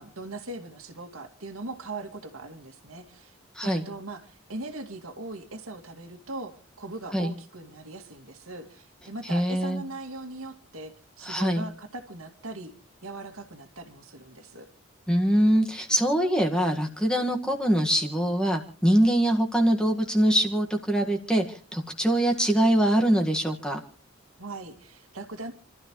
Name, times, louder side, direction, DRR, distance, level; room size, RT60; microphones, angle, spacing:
voice 1, 0.0-12.7 13.0-14.7 24.4-25.5, right 2 dB, 80° right, 7 dB, 2.4 m, -40 dB
voice 2, 3.5-3.8 7.1-7.3 9.2-9.8 11.2-11.7 15.1-23.8, right 1 dB, 5° left, 2 dB, 1.7 m, -23 dB
28.5 x 13.0 x 3.2 m, 0.41 s
head